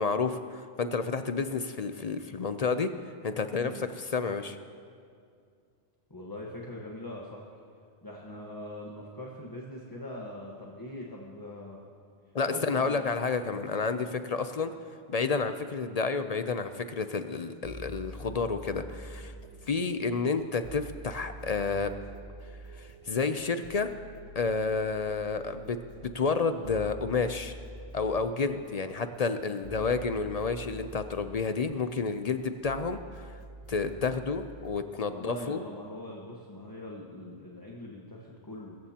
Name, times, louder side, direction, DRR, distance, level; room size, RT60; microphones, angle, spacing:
voice 1, 0.0-2.9 3.2-4.6 12.3-14.7 15.1-19.3 19.7-21.9 22.7-23.9 24.4-27.6 27.9-33.4 33.7-35.6, left 4 dB, 45° left, 9 dB, 0.5 m, -30 dB
voice 2, 6.1-7.4 8.0-11.8 12.5-13.1 35.1-38.8, left 1 dB, 20° left, -3 dB, 1.2 m, -42 dB
sound 1, 17.5-34.8, right 1 dB, 35° right, 0.8 m, -47 dB
22.5 x 14.5 x 2.9 m, 2.3 s
omnidirectional pair, 1.1 m